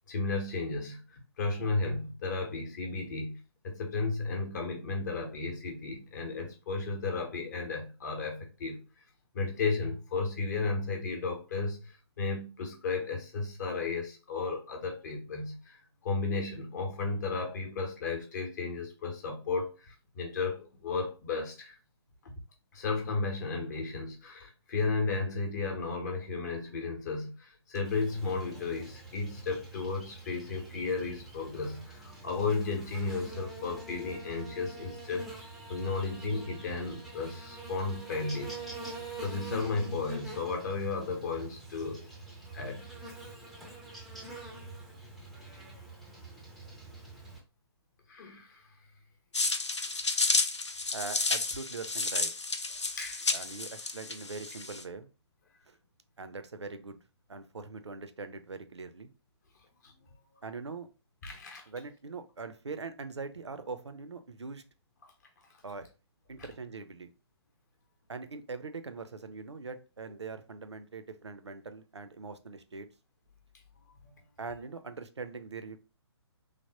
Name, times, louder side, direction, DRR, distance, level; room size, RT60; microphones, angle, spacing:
voice 1, 0.1-3.4 3.6-8.8 9.3-21.8 22.2-22.3 22.7-35.3 35.7-38.5 39.2-42.0 42.5-42.9 48.1-48.7 53.0-53.3 59.8-59.9 61.2-61.6, left 4 dB, 40° left, 0.7 m, -34 dB
Buzz, 27.8-47.4, right 2 dB, ahead, 0.4 m, -45 dB
sound 1, 49.3-54.8, left 3 dB, 85° left, 0.5 m, -31 dB
voice 2, 50.9-52.3 53.3-55.1 55.7-55.8 56.2-57.0 57.3-59.1 60.4-60.9 61.7-64.6 65.6-65.9 66.3-67.1 68.1-72.9 74.4-75.8, right 4 dB, 75° right, 0.5 m, -42 dB
3.3 x 2.0 x 2.7 m
figure-of-eight pair, 130°, 14 cm